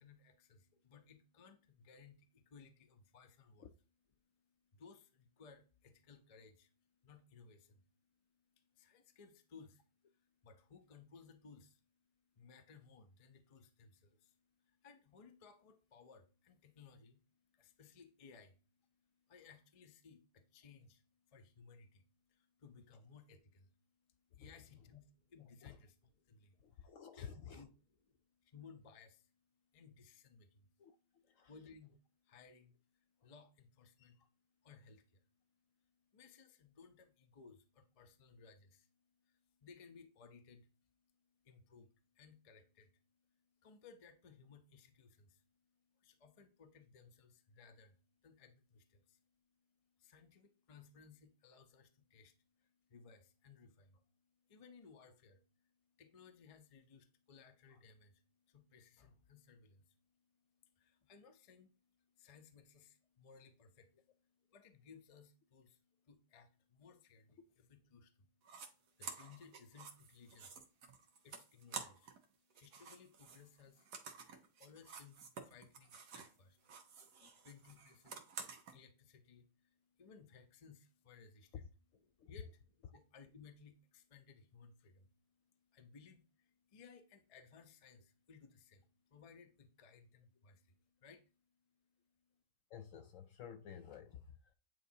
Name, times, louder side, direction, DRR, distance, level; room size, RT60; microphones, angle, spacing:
voice 1, 0.0-3.7 4.2-27.7 28.1-81.5 82.1-92.4, left 5 dB, 40° left, 0.5 m, -62 dB
voice 2, 26.6-27.7 30.8-31.5 33.2-33.3 57.7-57.8 74.4-74.5 77.2-77.4 81.5-81.6 82.2-82.3 92.7-94.5, left 8 dB, 70° left, 0.8 m, -53 dB
sound 1, 68.4-68.7 69.0-72.2 72.5-76.4 76.6-78.7, right 6 dB, 85° right, 1.5 m, -51 dB
9.0 x 4.0 x 2.7 m
omnidirectional pair, 1.7 m